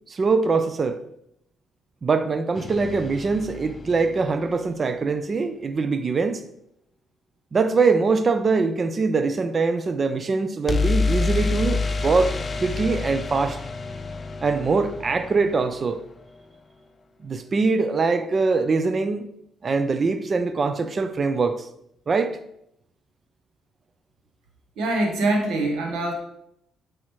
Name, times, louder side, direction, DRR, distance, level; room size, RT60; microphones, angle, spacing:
voice 1, 0.1-1.0 2.0-6.4 7.5-13.6 14.4-16.0 17.2-19.3 19.6-21.7 22.1-22.4, right 4 dB, 40° right, 0.5 m, -23 dB
sound 1, 2.6-4.6 10.7-16.5, left 4 dB, 30° left, 0.6 m, -28 dB
voice 2, 24.8-26.1, right 2 dB, 85° right, 1.1 m, -23 dB
8.0 x 4.9 x 3.1 m
cardioid pair, 90°, 0 cm